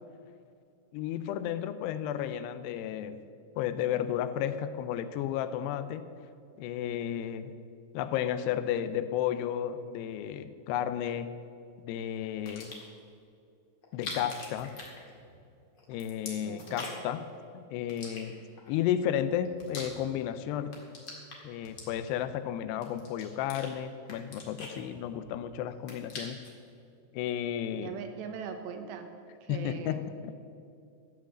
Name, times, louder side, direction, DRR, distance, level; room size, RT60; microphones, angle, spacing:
voice 1, 0.9-3.2 3.6-6.1 6.6-7.5 7.9-11.3 11.8-12.7 13.9-14.7 15.9-17.3 17.5-18.4 18.7-20.7 21.4-26.4 27.1-27.9 29.5-30.1, left 10 dB, 85° left, 12 dB, 2.6 m, -33 dB
sound 1, 12.3-13.0 13.8-15.5 15.8-17.2 17.9-18.7 19.2-20.3 20.6-22.3 22.8-23.7 24.0-25.4 25.7-26.6, left 3 dB, 45° left, 1.5 m, -43 dB
voice 2, 16.5-16.9 27.8-29.1 29.4-30.1, right 6 dB, 90° right, 6 dB, 3.2 m, -40 dB
13.5 x 6.2 x 7.4 m, 2.5 s
omnidirectional pair, 4.9 m